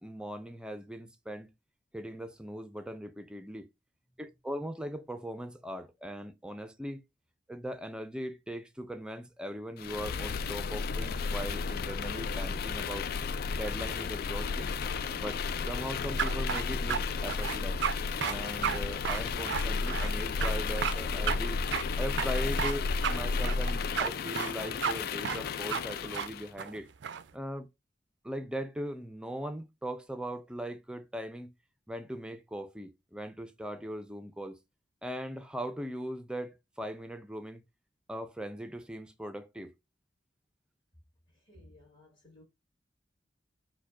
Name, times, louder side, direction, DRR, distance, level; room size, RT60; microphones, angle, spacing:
voice 1, 0.0-1.5 1.9-3.7 4.2-7.0 7.5-13.1 13.5-14.8 15.2-17.8 18.2-21.6 22.0-26.9 27.3-27.7 28.2-31.5 31.9-34.6 35.0-37.6 38.1-39.7, equal, 5° right, 0.4 m, -39 dB
sound 1, 9.8-26.5, left 4 dB, 55° left, 0.3 m, -33 dB
sound 2, 16.2-17.0 17.3-18.0 18.2-18.4 18.6-18.8 19.1-20.1 20.4-20.5 20.8-21.0 21.3-21.4 21.7-21.8 22.2-22.8 23.0-23.2 23.4-24.1 24.4-24.5 24.8-24.9 25.3-25.4 25.7-25.8 26.1-26.3 26.6-27.2, right 8 dB, 80° right, 0.4 m, -32 dB
voice 2, 41.5-42.4, left 1 dB, 30° left, 1.8 m, -56 dB
4.8 x 2.2 x 4.6 m
head